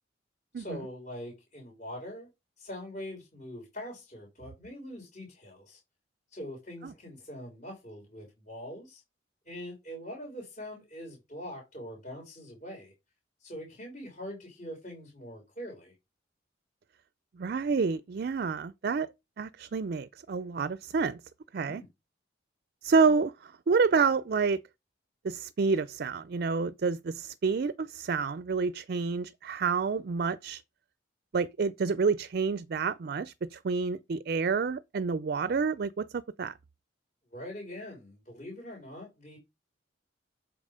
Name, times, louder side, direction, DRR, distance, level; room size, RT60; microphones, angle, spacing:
voice 1, 0.6-2.3 2.6-5.8 6.3-9.0 9.4-12.9 13.4-15.9 21.6-21.9 37.3-39.4, equal, 45° left, 3.4 m, -43 dB
voice 2, 17.4-19.1 19.4-21.2 21.5-21.8 22.8-24.6 25.2-30.6 31.3-36.5, right 5 dB, 55° right, 0.4 m, -28 dB
7.1 x 5.4 x 5.0 m
head